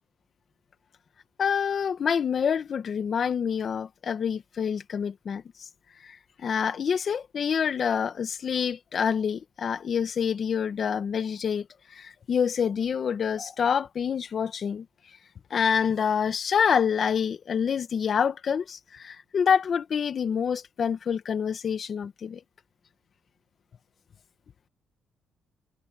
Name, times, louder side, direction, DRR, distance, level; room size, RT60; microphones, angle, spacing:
voice 1, 1.4-5.7 6.0-11.7 11.9-14.9 15.5-22.4, left 7 dB, 50° left, 1.9 m, -27 dB
cardioid pair, 90°, 0 cm